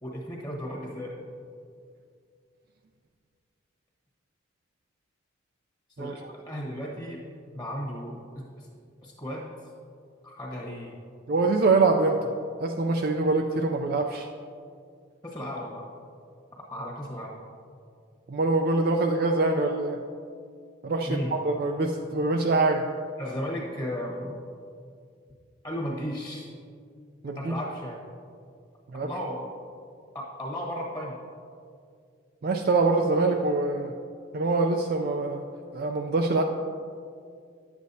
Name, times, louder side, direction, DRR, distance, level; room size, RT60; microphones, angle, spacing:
voice 1, 0.0-1.2 6.0-7.2 7.5-8.7 9.0-9.5 10.2-11.0 15.2-15.9 16.5-17.4 21.1-21.3 23.2-24.3 25.6-26.5 27.3-28.0 28.9-29.5 30.1-31.2, equal, 20° left, -3 dB, 1.2 m, -35 dB
voice 2, 11.3-12.3 12.6-14.3 18.3-20.0 20.8-22.8 27.2-27.5 28.9-29.1 32.4-33.9 34.3-35.4 35.7-36.4, right 3 dB, 50° right, 3 dB, 0.4 m, -24 dB
10.5 x 8.3 x 2.7 m, 2.2 s
head